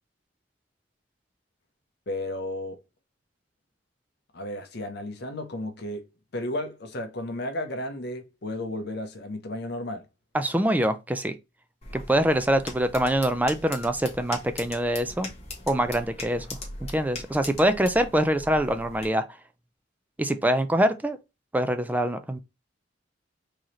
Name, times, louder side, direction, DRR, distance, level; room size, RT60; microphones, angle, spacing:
voice 1, 2.1-2.8 4.3-6.1 6.3-10.1, left 1 dB, 60° left, 0.8 m, -33 dB
voice 2, 10.3-11.4 11.9-15.3 15.7-16.5 16.9-19.3 20.2-21.2 21.5-22.4, right 1 dB, 10° right, 0.4 m, -24 dB
sound 1, 11.8-19.1, left 3 dB, 35° left, 1.3 m, -40 dB
4.7 x 2.9 x 3.0 m
head